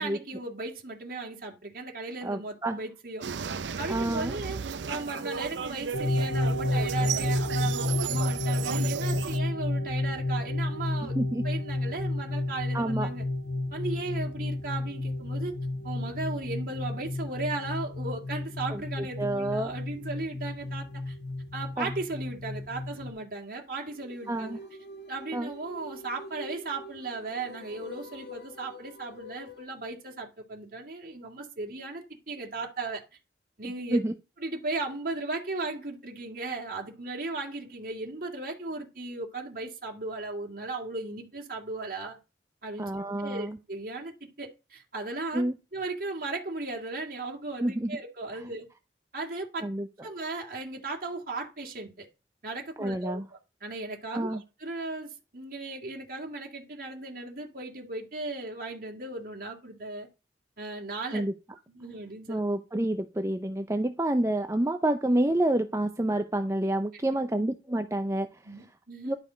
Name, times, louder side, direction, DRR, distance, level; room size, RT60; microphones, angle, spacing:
voice 1, 0.0-3.2 3.8-4.6 4.9-11.2 11.4-13.2 13.7-15.5 15.8-21.2 21.5-24.6 25.1-33.0 33.6-34.0 34.4-42.2 42.6-42.9 43.2-44.1 44.4-45.4 45.7-48.7 49.1-49.7 50.0-52.1 52.4-53.2 53.6-60.1 60.6-61.2 61.7-62.4 68.4-69.2, right 3 dB, 50° right, 2.3 m, -36 dB
voice 2, 2.2-2.8 3.9-4.3 11.2-11.4 12.7-13.1 18.7-18.8 19.2-19.7 21.8-21.9 24.3-24.6 25.3-25.5 33.9-34.1 42.8-43.6 45.3-45.6 47.6-47.9 49.6-49.9 52.8-53.2 54.1-54.4 61.1-61.3 62.3-68.3 69.0-69.1, right 1 dB, 15° right, 0.5 m, -28 dB
sound 1, 3.2-9.4, right 6 dB, 80° right, 0.6 m, -34 dB
sound 2, 5.9-23.1, left 2 dB, 80° left, 2.3 m, -31 dB
sound 3, 23.7-29.7, equal, 65° left, 1.6 m, -45 dB
11.5 x 5.3 x 5.1 m
head